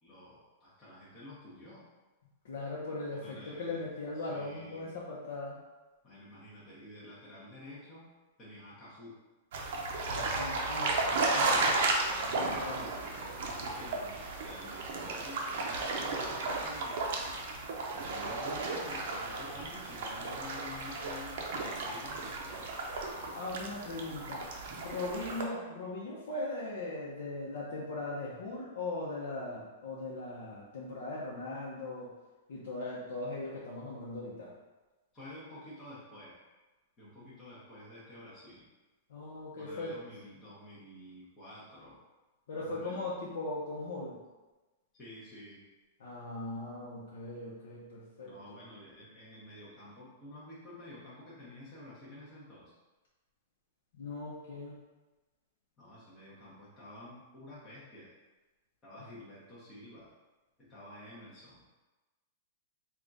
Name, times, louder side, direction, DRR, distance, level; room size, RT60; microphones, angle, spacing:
voice 1, 0.0-1.8 3.1-3.8 4.2-4.9 6.0-8.1 8.4-9.2 12.5-17.1 17.9-22.8 35.1-36.4 37.0-38.7 39.6-42.0 42.5-43.1 44.9-45.6 48.2-52.7 55.8-58.1 58.8-60.1 60.6-61.6, left 1 dB, 15° left, -9 dB, 0.8 m, -50 dB
voice 2, 2.4-5.6 10.1-11.7 12.2-12.9 23.3-24.5 24.8-32.1 32.5-34.5 39.1-39.9 42.5-44.2 46.0-48.6 54.0-54.8, left 2 dB, 75° left, -6 dB, 0.7 m, -39 dB
sound 1, 9.5-25.4, right 3 dB, 55° right, 0.5 m, -34 dB
3.5 x 2.3 x 3.9 m, 1.2 s
supercardioid pair, 175°, 0 cm